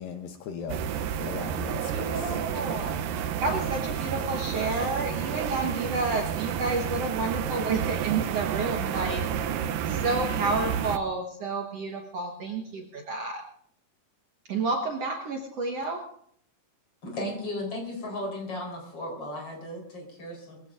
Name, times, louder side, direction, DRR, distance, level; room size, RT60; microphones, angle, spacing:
voice 1, 0.0-2.3, left 6 dB, 75° left, 6 dB, 2.5 m, -39 dB
sound 1, 0.7-11.0, right 8 dB, 75° right, 2.3 m, -30 dB
voice 2, 1.4-2.9 3.4-9.3 9.9-13.4 14.5-16.1, right 3 dB, 60° right, 1 dB, 1.9 m, -30 dB
voice 3, 17.0-20.6, left 1 dB, 40° left, 1 dB, 4.8 m, -35 dB
22.5 x 16.0 x 2.5 m, 0.64 s
omnidirectional pair, 4.2 m